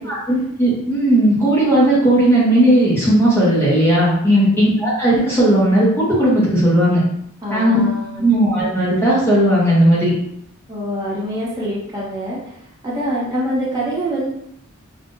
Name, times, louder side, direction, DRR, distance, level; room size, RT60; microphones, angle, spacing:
voice 1, 0.1-7.0 7.5-7.8 8.2-10.1, right 1 dB, 10° left, -8 dB, 0.9 m, -15 dB
voice 2, 7.4-8.4 10.7-14.3, equal, 15° right, -7 dB, 1.1 m, -25 dB
5.4 x 2.5 x 2.6 m, 0.75 s
head